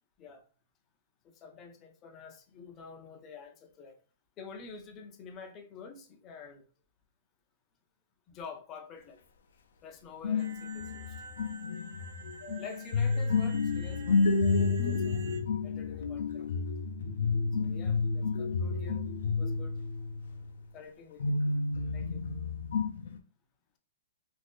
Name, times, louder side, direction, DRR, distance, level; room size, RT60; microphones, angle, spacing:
voice 1, 1.2-4.0 4.4-6.6 8.3-9.2 9.8-11.2 12.6-14.3 14.8-15.2 15.6-16.6 17.5-19.0 19.4-19.8 20.7-21.4 21.9-22.2, left 5 dB, 20° left, 0.5 m, -48 dB
sound 1, 10.2-20.7 21.2-23.2, left 4 dB, 75° left, 0.4 m, -30 dB
sound 2, 10.4-15.4, right 4 dB, 60° right, 0.7 m, -50 dB
2.5 x 2.5 x 3.5 m
hypercardioid pair, 170°, 0 cm